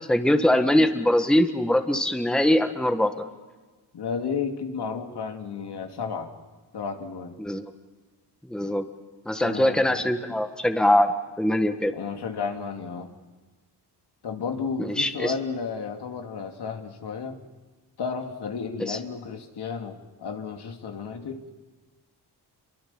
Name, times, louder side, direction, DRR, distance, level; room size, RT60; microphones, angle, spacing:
voice 1, 0.1-3.1 7.4-7.6 8.5-8.9 9.2-11.9 14.8-15.3 18.9-19.0, left 1 dB, ahead, 7 dB, 1.5 m, -22 dB
voice 2, 3.9-6.3 6.7-7.4 9.4-10.1 11.9-13.1 14.2-17.4 18.0-21.4, left 5 dB, 70° left, 4 dB, 2.7 m, -32 dB
27.5 x 23.0 x 7.2 m, 1.3 s
cardioid pair, 100°, 41 cm